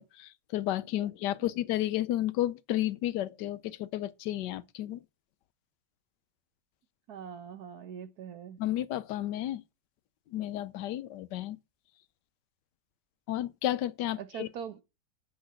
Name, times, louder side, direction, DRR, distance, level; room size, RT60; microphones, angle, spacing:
voice 1, 0.0-5.0 8.6-9.6 10.3-11.6 13.3-14.5, left 13 dB, 85° left, 1.3 m, -32 dB
voice 2, 7.1-8.6 14.2-14.8, right 8 dB, 65° right, 1.4 m, -42 dB
6.7 x 6.3 x 7.5 m
omnidirectional pair, 1.8 m